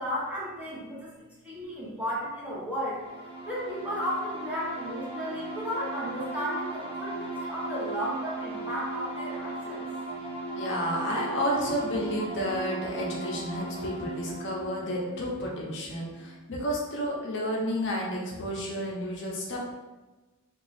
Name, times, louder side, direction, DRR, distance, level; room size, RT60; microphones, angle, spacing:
voice 1, 0.0-3.0 3.5-10.2, equal, 5° right, -8 dB, 0.9 m, -34 dB
sound 1, 2.9-16.4, right 2 dB, 25° right, 0.7 m, -37 dB
voice 2, 10.6-19.6, equal, 55° left, -3 dB, 0.6 m, -31 dB
2.8 x 2.4 x 4.1 m, 1.2 s
head